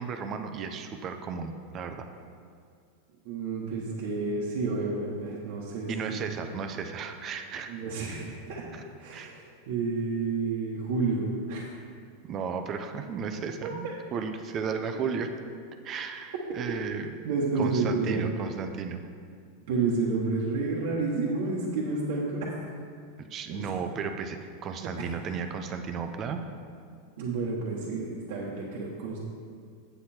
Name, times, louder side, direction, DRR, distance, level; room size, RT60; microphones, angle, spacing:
voice 1, 0.0-2.1 5.9-7.7 8.1-8.2 8.7-8.8 9.1-9.3 12.2-15.3 15.8-17.1 17.6-19.0 23.2-26.4, right 6 dB, 40° right, 6 dB, 0.7 m, -34 dB
voice 2, 3.2-6.2 7.7-8.7 9.0-11.6 13.6-13.9 17.2-18.3 19.7-22.5 23.5-23.7 24.8-25.1 27.2-29.2, right 3 dB, 70° right, -5 dB, 1.3 m, -30 dB
8.1 x 7.8 x 4.4 m, 2.2 s
hypercardioid pair, 110°, 0 cm